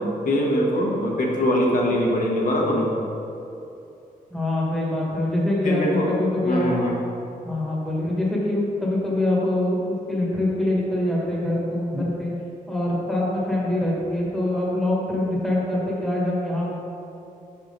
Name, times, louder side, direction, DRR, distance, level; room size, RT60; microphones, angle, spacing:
voice 1, 0.0-2.9 5.6-6.1 6.4-7.0, equal, 60° left, -2 dB, 1.2 m, -22 dB
voice 2, 4.3-6.8 7.4-12.3 12.7-16.7, left 1 dB, ahead, -6 dB, 1.5 m, -24 dB
5.7 x 4.6 x 5.3 m, 2.8 s
wide cardioid pair, 125°, 15 cm